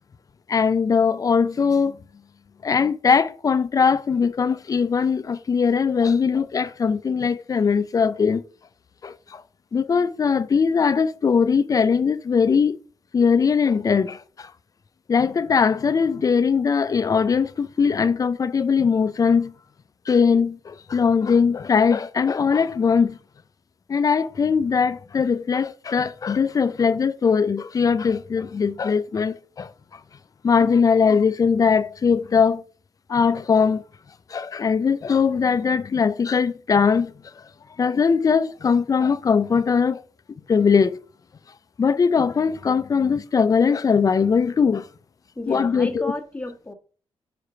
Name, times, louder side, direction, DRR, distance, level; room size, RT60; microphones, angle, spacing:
voice 1, 0.5-2.0 2.6-8.4 9.0-9.4 9.7-12.8 13.1-14.5 15.1-19.5 20.1-23.2 23.9-29.7 30.4-32.6 33.1-33.8 34.3-37.1 37.8-40.0 40.5-41.0 41.8-44.9 45.5-46.1, left 6 dB, 40° left, 0.5 m, -20 dB
voice 2, 45.4-46.7, left 2 dB, 15° left, 1.4 m, -32 dB
5.0 x 4.9 x 5.6 m
cardioid pair, 100°, 10 cm